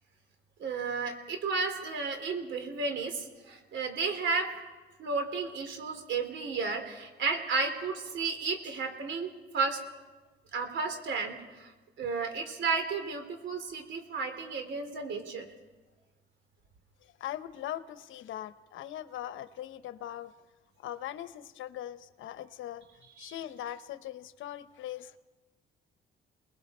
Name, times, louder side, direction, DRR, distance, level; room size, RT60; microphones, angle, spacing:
voice 1, 0.6-4.5 5.0-9.8 10.5-11.7 12.0-15.5 23.2-23.3, right 4 dB, 70° right, 6 dB, 3.3 m, -33 dB
voice 2, 17.0-20.3 20.8-22.8 23.2-25.2, left 12 dB, 80° left, 13 dB, 0.9 m, -40 dB
30.0 x 20.5 x 4.3 m, 1.2 s
cardioid pair, 90°, 20 cm